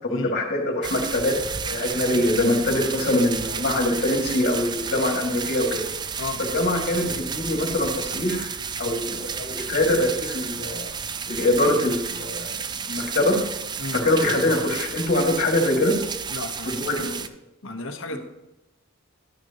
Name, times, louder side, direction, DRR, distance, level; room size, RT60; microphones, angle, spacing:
voice 1, 0.0-1.3 1.6-5.8 6.4-8.5 8.8-10.9 11.3-12.5 12.9-13.4 13.9-16.0 16.7-17.1, left 1 dB, 50° left, 1 dB, 2.1 m, -23 dB
sound 1, 0.8-17.3, right 6 dB, 20° right, 0.3 m, -32 dB
voice 2, 16.3-17.3 17.6-18.2, left 3 dB, 65° left, 3 dB, 1.1 m, -34 dB
12.0 x 9.4 x 2.9 m, 0.95 s
head